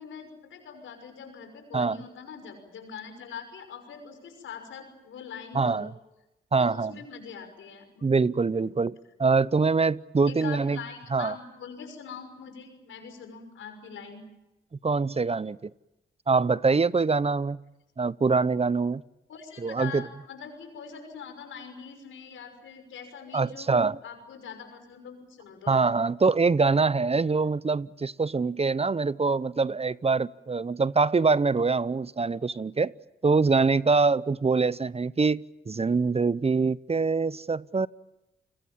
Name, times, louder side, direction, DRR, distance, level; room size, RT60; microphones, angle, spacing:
voice 1, 0.0-5.9 6.6-8.1 8.5-8.8 10.3-14.3 19.3-25.8 26.7-26.8, left 6 dB, 80° left, 6.0 m, -43 dB
voice 2, 5.5-5.9 6.5-7.0 8.0-8.9 9.2-10.8 11.1-11.3 14.8-15.7 16.3-17.6 18.0-19.0 19.6-20.0 23.3-24.0 25.7-32.9 33.2-37.9, right 4 dB, 30° right, 0.8 m, -24 dB
29.5 x 21.5 x 7.4 m
supercardioid pair, 45°, 20 cm